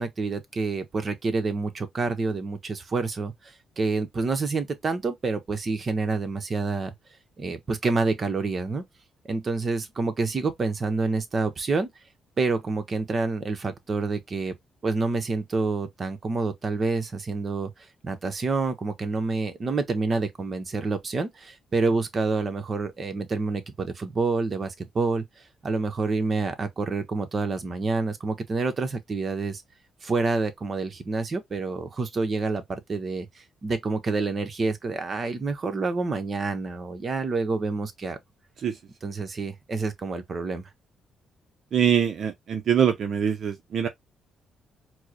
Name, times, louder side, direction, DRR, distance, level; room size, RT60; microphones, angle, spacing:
voice 1, 0.0-6.9 7.4-8.8 9.3-11.9 12.4-14.5 14.8-17.7 18.0-25.2 25.6-29.6 30.0-38.2 39.0-40.6, right 3 dB, 40° right, 0.9 m, -28 dB
voice 2, 41.7-43.9, right 8 dB, 60° right, 0.6 m, -23 dB
4.5 x 2.1 x 2.9 m
cardioid pair, 90°, 0 cm